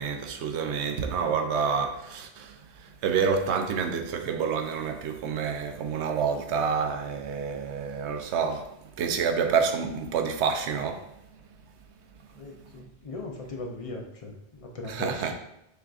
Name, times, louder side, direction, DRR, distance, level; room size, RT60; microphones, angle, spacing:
voice 1, 0.0-11.1 14.9-15.3, right 6 dB, 85° right, 0.9 m, -28 dB
voice 2, 12.3-15.3, left 2 dB, 50° left, 0.4 m, -39 dB
6.6 x 2.5 x 2.3 m
omnidirectional pair, 1.1 m